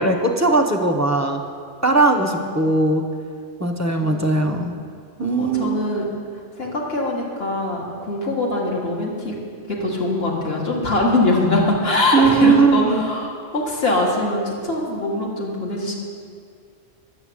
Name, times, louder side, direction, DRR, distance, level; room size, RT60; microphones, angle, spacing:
voice 1, 0.0-1.4 1.8-3.1 3.6-4.7 5.2-5.9 12.1-13.0, right 3 dB, 15° right, 2 dB, 0.7 m, -19 dB
voice 2, 4.0-4.6 5.4-6.1 6.6-9.3 9.7-15.9, left 2 dB, 50° left, -2 dB, 2.0 m, -22 dB
11.0 x 7.0 x 8.5 m, 2.2 s
omnidirectional pair, 1.3 m